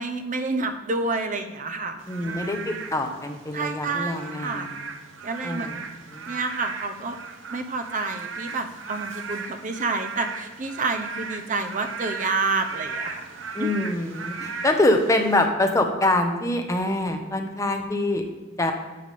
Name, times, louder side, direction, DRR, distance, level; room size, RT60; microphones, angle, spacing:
voice 1, 0.0-2.5 3.5-4.7 5.2-5.9 6.3-7.2 7.5-13.3 13.6-13.8, right 3 dB, 45° right, 7 dB, 0.8 m, -29 dB
Frog / Rain, 2.0-15.5, right 5 dB, 90° right, 0.8 m, -37 dB
voice 2, 2.1-4.8 5.4-5.8 6.1-6.3 13.5-18.2 18.6-18.7, left 1 dB, 15° left, 4 dB, 0.9 m, -24 dB
9.4 x 3.7 x 6.7 m, 1.3 s
head